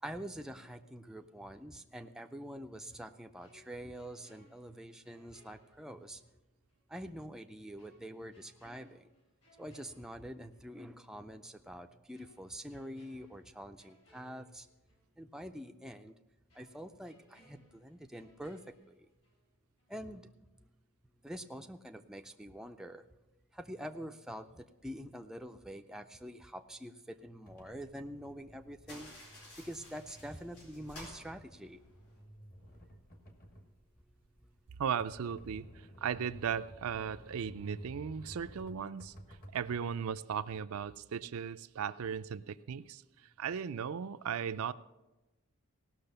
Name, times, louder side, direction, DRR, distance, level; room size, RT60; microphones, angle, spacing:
voice 1, 0.0-6.2 6.9-9.1 9.6-14.7 15.2-16.1 16.5-18.6 18.9-19.1 19.9-20.4 21.2-23.0 23.5-29.1 29.6-31.8, equal, 5° right, 5 dB, 0.4 m, -46 dB
sound 1, 3.4-6.4 6.7-6.8 7.8-10.7 11.1-11.3 12.1-15.1 15.4-15.6 16.5-19.5 19.8-20.0, left 1 dB, 60° left, 4.6 m, -67 dB
sound 2, 27.5-39.8, equal, 40° left, 1.4 m, -54 dB
sound 3, 28.8-32.2, left 1 dB, 90° left, 4.2 m, -53 dB
voice 2, 34.8-35.7 36.0-43.0 43.4-44.7, right 7 dB, 75° right, 12 dB, 0.4 m, -37 dB
17.0 x 6.2 x 6.7 m, 1.1 s
head